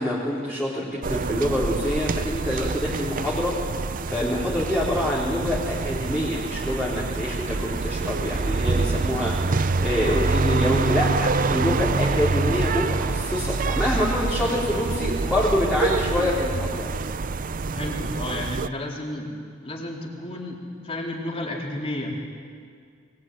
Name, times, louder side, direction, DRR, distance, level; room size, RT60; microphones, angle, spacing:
voice 1, 0.0-16.9, left 1 dB, 5° left, -8 dB, 3.9 m, -26 dB
sound 1, 1.0-18.7, right 3 dB, 40° right, 0.5 m, -26 dB
voice 2, 17.7-19.3 19.6-22.1, left 1 dB, 30° left, -1 dB, 3.9 m, -32 dB
21.5 x 21.5 x 9.3 m, 2.1 s
head